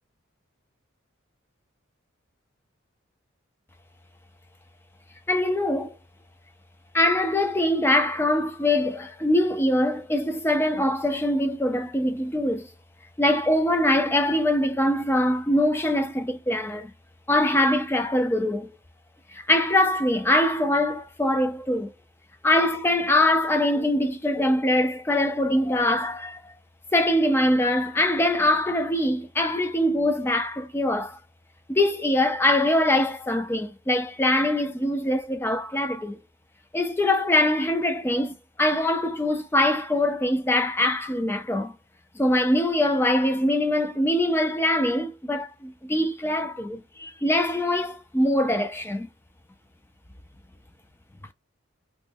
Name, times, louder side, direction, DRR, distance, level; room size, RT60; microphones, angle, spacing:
voice 1, 5.3-6.0 6.9-12.7 13.2-16.9 17.3-18.8 19.3-21.9 22.4-26.5 26.9-31.2 31.7-36.2 36.7-41.7 42.2-49.1, left 1 dB, 10° left, 0.3 m, -23 dB
3.0 x 2.1 x 3.4 m
head